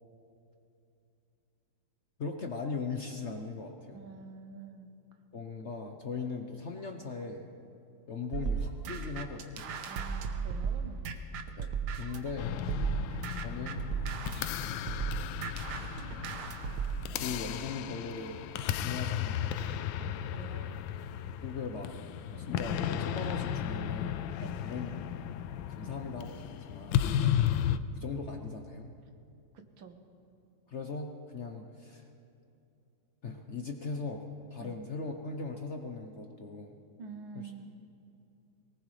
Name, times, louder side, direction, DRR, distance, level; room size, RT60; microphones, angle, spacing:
voice 1, 2.2-4.0 5.3-7.5 8.1-9.7 11.6-12.6 13.4-13.8 16.9-18.4 18.8-19.8 21.4-21.9 22.4-24.3 24.6-25.2 25.7-27.0 27.9-28.9 30.7-32.1 33.2-36.7 37.3-37.5, left 4 dB, 50° left, 4 dB, 0.9 m, -39 dB
voice 2, 3.9-4.9 9.8-11.0 12.8-13.0 20.0-20.8 22.3-22.5 24.4-24.6 27.2-27.4 29.5-30.0 34.6-34.7 37.0-37.7, right 5 dB, 80° right, 6 dB, 1.9 m, -47 dB
sound 1, 8.3-12.3 12.7-17.1, right 6 dB, 65° right, 1.4 m, -35 dB
sound 2, 12.4-27.8, left 10 dB, 85° left, 1.3 m, -34 dB
22.5 x 19.0 x 3.2 m, 2.6 s
omnidirectional pair, 2.1 m